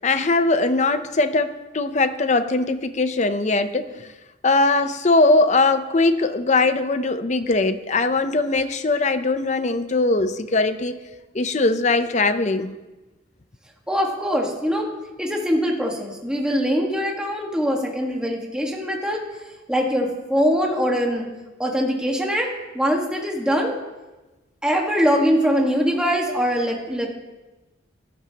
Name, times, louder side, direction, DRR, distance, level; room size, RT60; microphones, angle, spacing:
voice 1, 0.0-4.1 4.4-11.0 11.3-12.8, left 3 dB, 35° left, 10 dB, 0.6 m, -20 dB
voice 2, 13.9-14.9 15.2-19.2 19.7-21.3 21.6-23.7 24.6-27.1, equal, 5° right, -1 dB, 1.5 m, -22 dB
13.5 x 12.0 x 2.9 m, 1.1 s
head